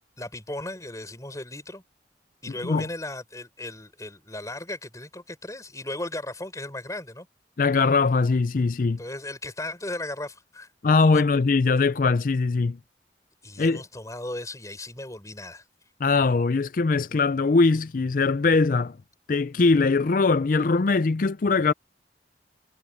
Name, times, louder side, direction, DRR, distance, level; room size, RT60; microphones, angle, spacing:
voice 1, 0.2-1.8 2.4-7.3 9.0-10.7 11.1-11.2 13.4-15.6, left 1 dB, 20° left, 4.9 m, -36 dB
voice 2, 7.6-9.0 10.8-12.8 13.6-13.8 16.0-19.0 19.3-21.7, left 4 dB, 50° left, 0.5 m, -21 dB
head